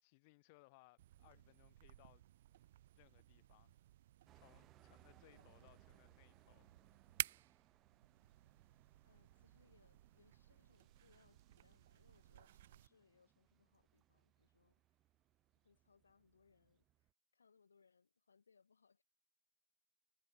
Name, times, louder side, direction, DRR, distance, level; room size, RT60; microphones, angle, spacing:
voice 1, 0.0-2.3 2.5-2.7 3.0-3.8 4.3-7.1, left 26 dB, 50° left, 1.4 m, -68 dB
sound 1, 1.0-12.9, right 13 dB, 55° right, 0.3 m, -53 dB
sound 2, 4.2-17.1, right 13 dB, 35° right, 1.8 m, -72 dB
voice 2, 5.1-5.8 9.0-14.8 15.6-19.0, left 5 dB, 75° left, 1.1 m, -74 dB
figure-of-eight pair, 90°, 0 cm